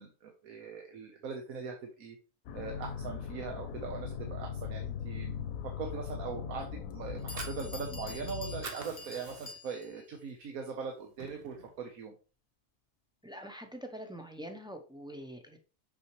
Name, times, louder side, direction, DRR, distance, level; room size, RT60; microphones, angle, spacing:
voice 1, 0.0-2.2 2.5-12.1, right 5 dB, 80° right, 3 dB, 1.4 m, -41 dB
sound 1, 2.5-8.6, left 7 dB, 80° left, 1.0 m, -39 dB
Bell, 6.9-7.0 7.3-10.1, left 2 dB, 40° left, 0.6 m, -47 dB
Fire, 7.1-8.3 8.5-9.9 10.3-10.4 10.8-11.8, right 4 dB, 45° right, 1.1 m, -45 dB
voice 2, 13.2-15.6, equal, 5° right, 3 dB, 0.3 m, -44 dB
6.1 x 5.7 x 3.0 m, 0.34 s
omnidirectional pair, 1.5 m